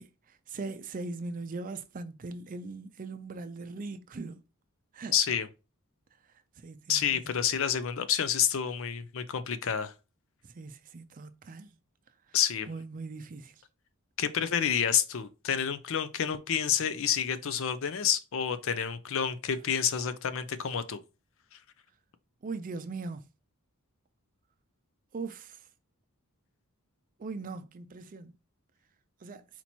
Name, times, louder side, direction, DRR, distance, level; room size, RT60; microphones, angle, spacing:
voice 1, 0.0-4.4 4.9-5.2 6.6-7.3 10.4-11.7 12.7-13.5 22.4-23.2 25.1-25.6 27.2-28.3 29.2-29.5, right 3 dB, 40° right, 0.4 m, -40 dB
voice 2, 5.1-5.5 6.9-9.9 12.3-12.7 14.2-21.0, left 8 dB, 60° left, 0.5 m, -29 dB
4.4 x 2.9 x 4.2 m
head